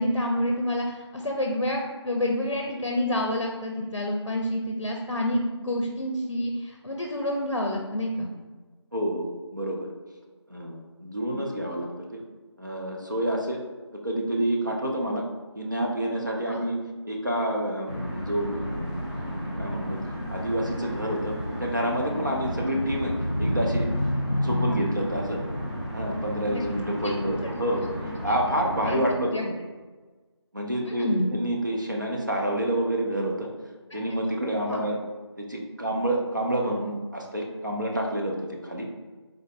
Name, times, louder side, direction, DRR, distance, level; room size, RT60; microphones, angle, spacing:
voice 1, 0.0-8.3 11.3-11.5 16.5-16.6 26.5-26.6 27.0-27.1 28.8-29.0 29.3-29.4 30.8-31.3 34.7-34.8, left 1 dB, 65° left, 1 dB, 0.5 m, -28 dB
voice 2, 8.9-9.9 10.5-12.2 12.6-13.6 14.0-15.2 15.5-16.8 17.0-20.0 20.3-23.1 23.4-23.9 24.4-25.4 25.9-29.5 30.5-33.5 33.9-35.0 35.4-38.9, right 1 dB, 40° right, -1 dB, 0.5 m, -28 dB
sound 1, 17.9-29.0, equal, 20° right, 0.9 m, -31 dB
3.8 x 2.4 x 3.3 m, 1.3 s
figure-of-eight pair, 180°, 15 cm